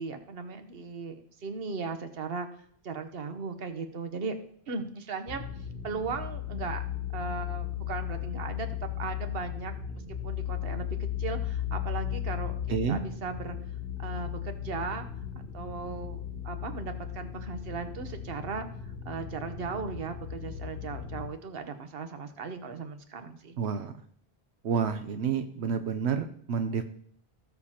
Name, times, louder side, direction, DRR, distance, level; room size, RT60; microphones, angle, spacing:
voice 1, 0.0-2.5 2.8-4.3 4.7-5.4 5.8-6.8 7.1-9.7 10.2-12.5 12.9-13.6 14.0-15.0 15.5-18.7 19.0-23.6, right 5 dB, 65° right, 8 dB, 1.2 m, -37 dB
sound 1, 5.3-21.3, left 10 dB, 70° left, 1.3 m, -36 dB
voice 2, 12.7-13.0 23.6-23.9 24.6-26.9, right 6 dB, 90° right, 8 dB, 1.0 m, -29 dB
18.0 x 6.9 x 2.9 m, 0.63 s
omnidirectional pair, 1.1 m